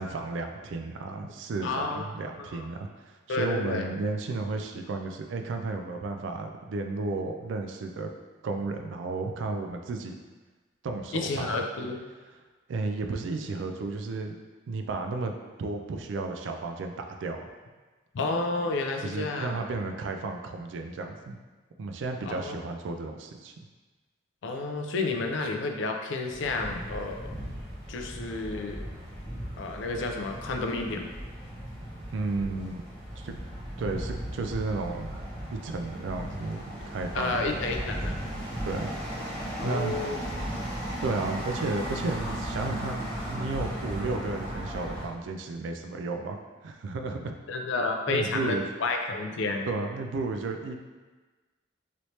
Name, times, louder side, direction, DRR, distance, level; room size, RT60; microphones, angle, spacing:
voice 1, 0.0-8.1 8.4-10.2 10.8-11.6 12.7-14.4 14.7-15.3 15.6-17.5 19.0-21.4 21.8-23.5 32.1-32.8 33.2-33.3 33.8-35.1 35.5-37.5 38.6-38.9 39.6-39.9 41.0-47.4 48.1-48.7 49.7-50.8, right 3 dB, 70° right, 4 dB, 0.3 m, -33 dB
voice 2, 1.6-2.1 2.4-2.7 3.3-3.8 11.1-12.0 18.1-19.6 22.3-22.6 24.4-27.3 27.9-28.8 29.6-31.1 37.1-38.1 39.6-40.2 47.5-49.7, left 3 dB, 70° left, 3 dB, 0.4 m, -30 dB
sound 1, 26.3-45.1, equal, 5° left, 1.0 m, -36 dB
3.1 x 3.0 x 2.7 m, 1.3 s
head